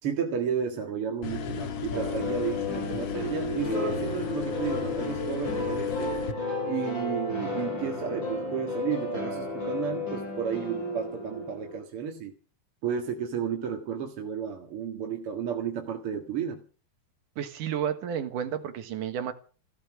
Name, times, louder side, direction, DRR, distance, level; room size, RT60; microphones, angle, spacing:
voice 1, 0.0-6.2 6.7-12.3 12.8-16.6, right 7 dB, 45° right, 3 dB, 2.3 m, -32 dB
sound 1, 1.2-6.3, left 7 dB, 55° left, 1.8 m, -34 dB
sound 2, 1.9-11.8, left 2 dB, 30° left, 6.8 m, -33 dB
voice 2, 17.4-19.3, right 9 dB, 70° right, 9 dB, 3.0 m, -31 dB
16.5 x 13.0 x 6.1 m, 0.38 s
omnidirectional pair, 4.0 m